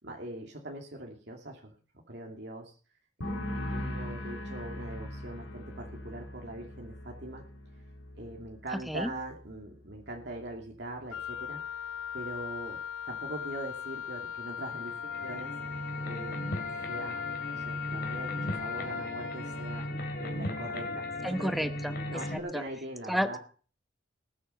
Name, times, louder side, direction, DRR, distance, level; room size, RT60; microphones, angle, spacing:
voice 1, 0.0-1.7 2.1-2.8 3.2-7.5 8.2-11.6 12.1-12.8 13.1-15.5 16.0-16.5 16.9-19.9 20.2-21.7 22.1-23.4, right 1 dB, 55° right, 0 dB, 2.6 m, -42 dB
sound 1, 3.2-10.7 10.9-11.5, left 1 dB, 70° left, 3.2 m, -41 dB
Wind instrument woodwind instrument, 11.1-20.0, left 8 dB, 85° left, 0.7 m, -39 dB
sound 2, 14.7-22.4, left 1 dB, 50° left, 3.4 m, -37 dB
voice 2, 21.2-21.9 22.5-22.6 23.1-23.4, equal, ahead, 10 dB, 0.9 m, -30 dB
19.5 x 8.7 x 5.7 m, 0.39 s
head